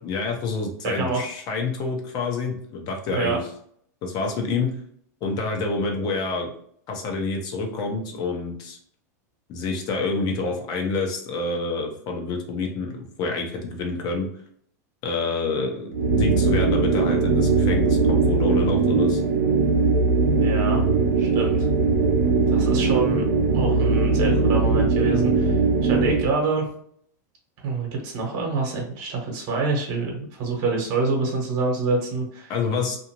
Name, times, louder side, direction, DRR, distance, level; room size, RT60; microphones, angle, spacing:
voice 1, 0.0-3.4 4.0-4.7 5.2-6.5 6.9-8.8 9.5-14.3 15.0-19.2 32.5-33.0, left 3 dB, 45° left, 2 dB, 0.8 m, -27 dB
voice 2, 0.8-1.3 3.1-3.4 20.3-20.8 21.2-21.7 22.5-23.2 23.5-26.6 27.6-32.5, right 3 dB, 55° right, 0 dB, 1.1 m, -26 dB
sound 1, 15.9-26.3, right 4 dB, 90° right, 0.6 m, -20 dB
2.6 x 2.4 x 2.9 m, 0.63 s
hypercardioid pair, 115°, 10 cm